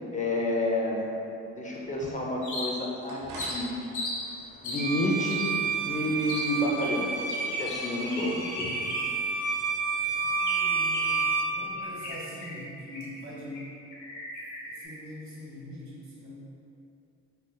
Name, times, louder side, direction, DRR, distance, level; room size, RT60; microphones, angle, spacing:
voice 1, 0.1-1.2 1.6-3.2 3.5-3.7 4.6-5.5 5.8-7.1 7.6-8.5, left 1 dB, 25° left, -3 dB, 0.5 m, -29 dB
sound 1, 1.7-9.6, right 1 dB, 85° right, 0.7 m, -49 dB
sound 2, 2.4-3.0 3.4-4.2 4.6-4.9 5.3-5.5 6.3-6.5 6.8-9.3 9.6-9.7 10.4-11.3 11.8-13.2 13.5-13.6 13.9-14.9, left 2 dB, 75° left, 0.8 m, -37 dB
Bowed string instrument, 4.8-11.6, right 4 dB, 35° right, 1.4 m, -30 dB
voice 2, 10.0-11.2 11.5-13.7 14.6-16.4, left 1 dB, 65° right, -6 dB, 1.1 m, -43 dB
3.8 x 3.2 x 2.2 m, 2.7 s
cardioid pair, 90°, 30 cm